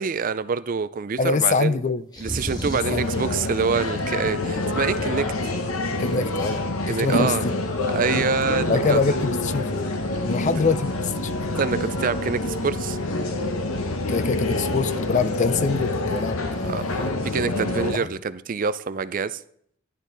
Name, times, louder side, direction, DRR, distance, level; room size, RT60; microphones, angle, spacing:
voice 1, 0.0-1.8 2.2-5.5 6.9-7.5 7.9-9.0 11.6-13.0 16.6-19.4, right 5 dB, 40° right, 0.4 m, -26 dB
voice 2, 1.2-2.0 2.7-3.2 6.0-7.5 8.0-8.2 8.7-9.9 10.2-11.6 14.1-17.1 17.8-18.1, left 4 dB, 35° left, 0.4 m, -25 dB
sound 1, 2.1-3.0, equal, 20° left, 1.5 m, -31 dB
sound 2, 2.8-17.9, left 2 dB, 85° left, 1.0 m, -27 dB
11.5 x 10.0 x 3.9 m
head